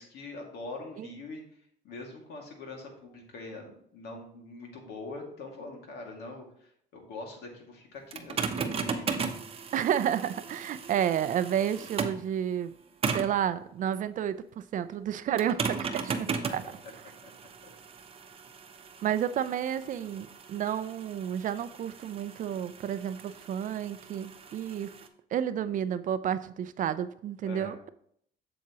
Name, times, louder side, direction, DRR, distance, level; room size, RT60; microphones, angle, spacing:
voice 1, 0.0-1.4 1.8-9.1 25.6-25.7 27.4-27.7, left 3 dB, 70° left, 1 dB, 2.2 m, -43 dB
sound 1, 8.1-12.3 13.0-13.4 15.4-25.1, right 5 dB, 35° right, 0.8 m, -37 dB
voice 2, 9.7-12.7 13.1-16.6 19.0-24.9 25.3-27.9, right 9 dB, 50° right, 13 dB, 0.5 m, -31 dB
7.4 x 7.2 x 3.0 m, 0.67 s
cardioid pair, 110°, 17 cm